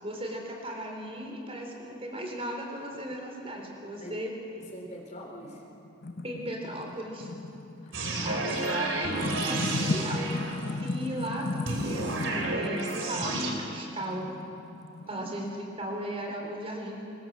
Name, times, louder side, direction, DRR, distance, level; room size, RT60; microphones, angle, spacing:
voice 1, 0.0-4.3 6.2-7.3 8.2-10.3 10.8-14.3 15.1-17.0, right 1 dB, 30° right, 1 dB, 3.6 m, -36 dB
voice 2, 4.6-5.6 7.8-8.4 15.0-15.3, equal, 35° left, 1 dB, 3.4 m, -44 dB
sound 1, 5.4-15.5, left 2 dB, 50° left, 0.9 m, -36 dB
sound 2, 7.9-10.9 11.7-13.5, right 2 dB, 65° right, 3.5 m, -31 dB
23.0 x 21.0 x 7.4 m, 2.8 s
head